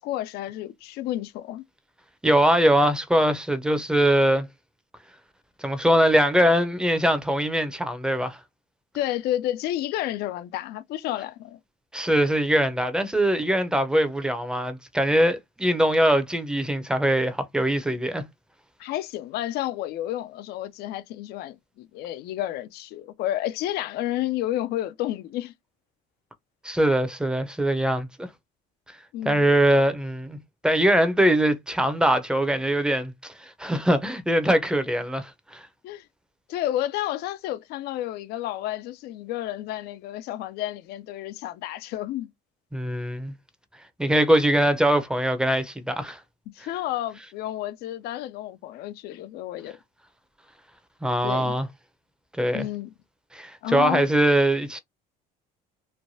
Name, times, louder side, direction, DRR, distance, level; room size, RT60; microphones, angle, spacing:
voice 1, 0.0-1.6 8.9-11.6 18.8-25.5 29.1-29.5 35.8-36.1 36.5-42.3 46.5-49.8 51.2-51.6 52.5-52.9 53.6-54.1, left 13 dB, 65° left, 0.4 m, -31 dB
voice 2, 2.2-4.5 5.6-8.4 11.9-18.2 26.6-28.3 29.3-30.4 30.6-35.7 42.7-43.3 44.0-46.2 51.0-51.7 52.4-52.6 53.3-54.8, right 1 dB, 5° right, 0.6 m, -22 dB
3.2 x 2.1 x 2.6 m
supercardioid pair, 90°, 18 cm